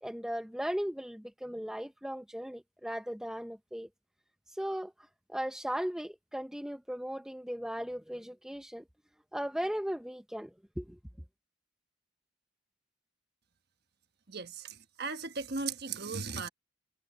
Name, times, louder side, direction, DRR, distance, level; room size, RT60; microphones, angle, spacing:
voice 1, 0.0-3.9 4.5-4.9 5.3-8.8 9.3-11.0, equal, 5° right, 0.5 m, -37 dB
voice 2, 14.3-16.5, right 4 dB, 50° right, 1.2 m, -37 dB
head